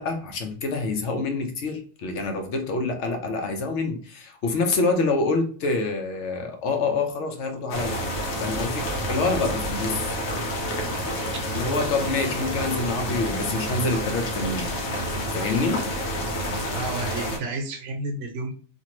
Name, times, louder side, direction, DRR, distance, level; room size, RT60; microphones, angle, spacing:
voice 1, 0.0-8.0 8.4-10.2 11.5-14.7 15.3-15.8, left 3 dB, 70° left, 0.9 m, -26 dB
sound 1, 7.7-17.4, equal, 90° left, 1.1 m, -29 dB
voice 2, 16.7-18.5, right 2 dB, 65° right, 0.9 m, -31 dB
2.6 x 2.5 x 2.9 m
omnidirectional pair, 1.3 m